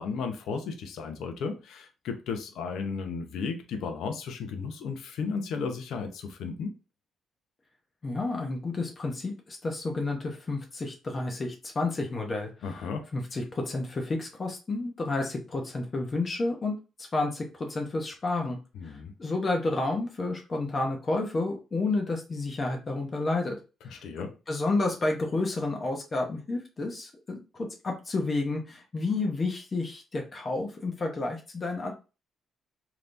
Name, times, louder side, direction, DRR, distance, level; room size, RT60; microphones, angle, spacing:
voice 1, 0.0-6.7 12.6-13.1 18.7-19.1 23.8-24.3, left 5 dB, 80° left, 0.7 m, -34 dB
voice 2, 8.0-12.9 13.1-18.6 19.2-23.6 23.9-31.9, left 2 dB, 35° left, 0.9 m, -30 dB
3.4 x 2.9 x 2.6 m
cardioid pair, 90°, 0 cm